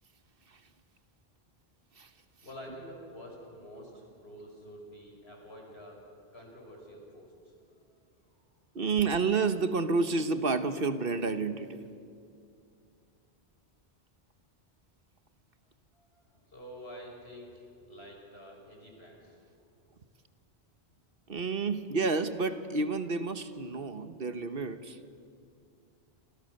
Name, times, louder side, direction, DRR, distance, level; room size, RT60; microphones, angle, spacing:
voice 1, 2.4-6.0 6.3-7.3 7.8-7.9 8.3-8.4 15.9-19.4, equal, 80° left, 0 dB, 5.9 m, -48 dB
voice 2, 8.7-11.8 21.3-25.0, right 4 dB, 65° right, 10 dB, 1.4 m, -30 dB
27.5 x 27.5 x 6.6 m, 2.4 s
omnidirectional pair, 1.0 m